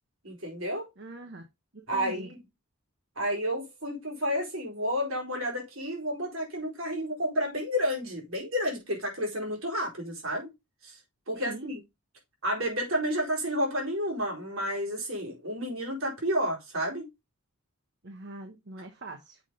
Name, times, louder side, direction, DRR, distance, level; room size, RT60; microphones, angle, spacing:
voice 1, 0.2-0.9 1.9-2.4 3.2-10.5 10.8-11.0 11.3-11.8 12.4-17.0, equal, 70° right, 4.4 m, -31 dB
voice 2, 1.0-1.4 1.7-2.3 11.3-11.7 18.0-19.4, right 2 dB, 55° right, 1.1 m, -43 dB
7.3 x 5.6 x 3.8 m
head